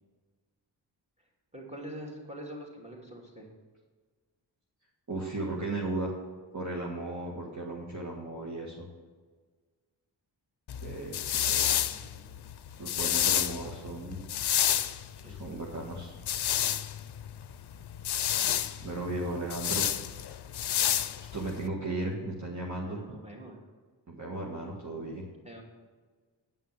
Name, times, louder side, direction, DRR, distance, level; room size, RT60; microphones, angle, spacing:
voice 1, 1.5-3.5 11.6-12.4 15.1-15.5 19.6-20.1 22.8-23.6 25.4-25.6, right 1 dB, 15° right, -1 dB, 2.8 m, -45 dB
voice 2, 5.1-6.1 6.5-8.9 10.8-11.7 12.8-14.2 15.3-16.1 18.8-19.8 21.3-23.2 24.1-25.3, right 2 dB, 40° right, -3 dB, 1.8 m, -36 dB
sound 1, 10.7-21.7, left 10 dB, 60° left, 0.6 m, -30 dB
9.3 x 5.8 x 7.6 m, 1.4 s
cardioid pair, 60°, 45 cm